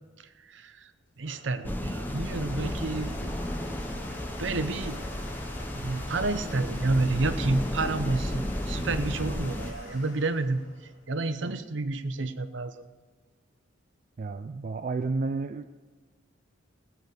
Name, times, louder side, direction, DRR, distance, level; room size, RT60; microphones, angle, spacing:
voice 1, 0.4-0.9 1.2-3.1 4.4-5.0 5.7-12.8, right 3 dB, 65° right, 10 dB, 0.7 m, -30 dB
Domestic sounds home sounds, 0.9-11.6, left 1 dB, 75° left, 2.7 m, -46 dB
sound 1, 1.6-9.7, left 1 dB, 10° left, 0.6 m, -33 dB
voice 2, 14.2-15.7, right 3 dB, 45° right, 8 dB, 0.3 m, -31 dB
17.5 x 8.1 x 5.2 m, 1.4 s
head